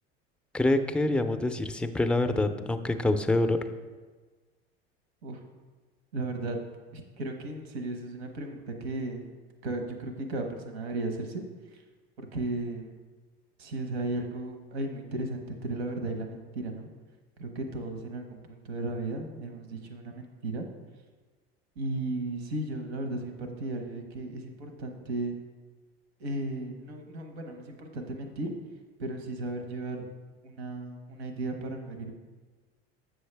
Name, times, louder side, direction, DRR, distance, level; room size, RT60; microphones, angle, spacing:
voice 1, 0.5-3.6, left 2 dB, 5° left, 8 dB, 0.4 m, -26 dB
voice 2, 6.1-6.6 6.9-9.3 9.6-11.8 12.2-12.9 13.6-16.9 17.4-20.7 21.8-25.3 26.2-28.5 29.0-30.0 30.4-32.1, right 2 dB, 85° right, 5 dB, 1.1 m, -35 dB
7.8 x 6.4 x 3.3 m, 1.3 s
hypercardioid pair, 95°, 31 cm